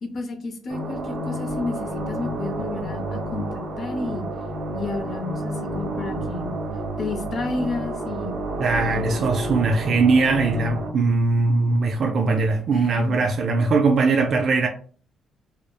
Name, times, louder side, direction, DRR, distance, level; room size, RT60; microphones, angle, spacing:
voice 1, 0.0-4.3 4.7-6.5 7.0-8.4 8.9-9.7 12.7-13.2, left 3 dB, 50° left, 0.6 m, -32 dB
sound 1, 0.7-10.9, right 1 dB, 80° right, 0.8 m, -30 dB
voice 2, 8.6-14.7, right 3 dB, 55° right, 0.3 m, -20 dB
3.0 x 2.0 x 2.2 m
cardioid pair, 90°, 0 cm